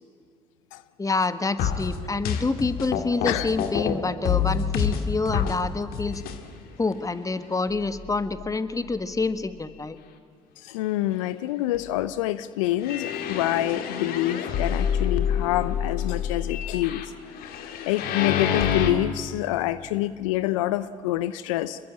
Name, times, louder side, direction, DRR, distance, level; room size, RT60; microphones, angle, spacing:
voice 1, 1.0-6.2 6.8-10.0, left 3 dB, 20° left, 12 dB, 1.6 m, -27 dB
sound 1, 1.6-3.9 4.3-5.6 5.9-6.4 6.9-7.0 7.7-7.8 8.3-8.4 12.8-18.9, left 8 dB, 65° left, 2.2 m, -27 dB
voice 2, 10.6-17.0 17.4-21.8, left 15 dB, 80° left, 16 dB, 0.7 m, -27 dB
25.5 x 22.0 x 8.8 m, 2.2 s
hypercardioid pair, 55°, 17 cm